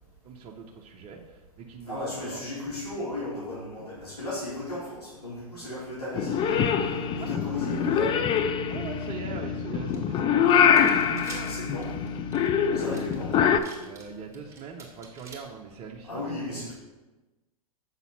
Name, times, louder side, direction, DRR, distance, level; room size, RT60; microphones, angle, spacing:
voice 1, 0.2-2.4 3.8-3.9 7.2-7.3 8.7-11.9 13.8-16.7, right 6 dB, 30° right, 0 dB, 0.8 m, -42 dB
voice 2, 1.8-6.8 7.1-8.2 11.4-11.9 12.7-13.4 16.0-16.7, left 2 dB, 85° left, -7 dB, 2.2 m, -35 dB
Purr / Meow, 6.2-13.6, left 7 dB, 25° left, 0.4 m, -24 dB
sound 1, 9.9-10.0 10.5-15.4, right 4 dB, 15° right, 2.1 m, -47 dB
7.2 x 4.0 x 5.6 m, 1.1 s
hypercardioid pair, 100°, 19 cm